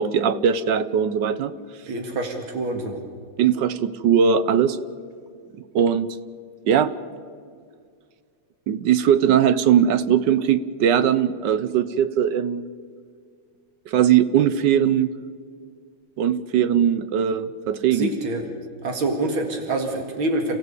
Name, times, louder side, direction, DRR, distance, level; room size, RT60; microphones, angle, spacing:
voice 1, 0.0-1.5 3.4-4.8 5.7-6.1 6.6-6.9 8.7-12.7 13.9-15.1 16.2-18.1, right 8 dB, 70° right, 14 dB, 1.3 m, -20 dB
voice 2, 1.9-3.0 17.9-18.4 18.8-20.6, right 2 dB, 90° right, 4 dB, 2.7 m, -26 dB
28.5 x 15.0 x 8.2 m, 2.1 s
omnidirectional pair, 2.2 m